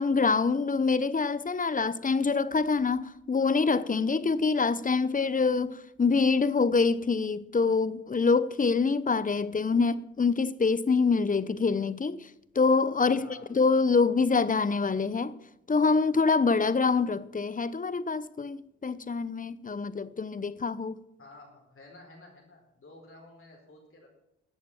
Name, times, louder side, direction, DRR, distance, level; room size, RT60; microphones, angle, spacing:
voice 1, 0.0-12.3 12.5-15.3 15.7-21.0, left 4 dB, 25° left, 0.8 m, -25 dB
voice 2, 13.0-13.4 21.2-24.1, left 2 dB, 45° left, 4.6 m, -51 dB
14.0 x 8.5 x 7.1 m
cardioid pair, 65°, 30 cm